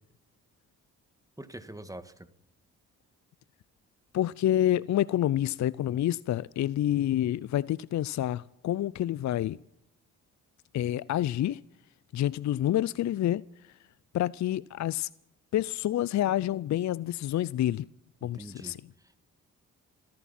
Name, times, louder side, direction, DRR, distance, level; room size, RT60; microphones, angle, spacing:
voice 1, 1.4-2.3 18.2-19.2, right 1 dB, 10° right, 1.8 m, -45 dB
voice 2, 4.1-9.6 10.7-11.6 12.1-13.4 14.1-15.1 15.5-17.9 18.2-18.8, left 12 dB, 50° left, 0.5 m, -28 dB
28.5 x 11.5 x 4.3 m
supercardioid pair, 50°, 36 cm